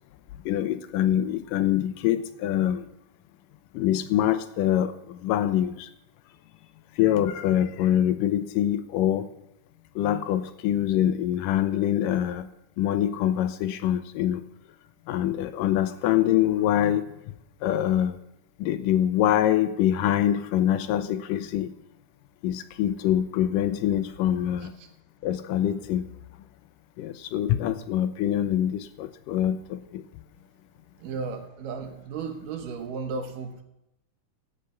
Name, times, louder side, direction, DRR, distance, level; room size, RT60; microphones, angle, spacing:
voice 1, 0.5-2.8 3.7-5.9 7.0-9.3 10.0-12.5 12.8-14.4 15.1-17.1 17.6-18.2 18.6-21.7 22.4-24.7 25.2-26.0 27.0-30.0, left 11 dB, 90° left, 11 dB, 2.3 m, -24 dB
voice 2, 31.0-33.6, right 5 dB, 80° right, 5 dB, 2.9 m, -34 dB
16.0 x 6.8 x 5.7 m, 0.85 s
omnidirectional pair, 3.8 m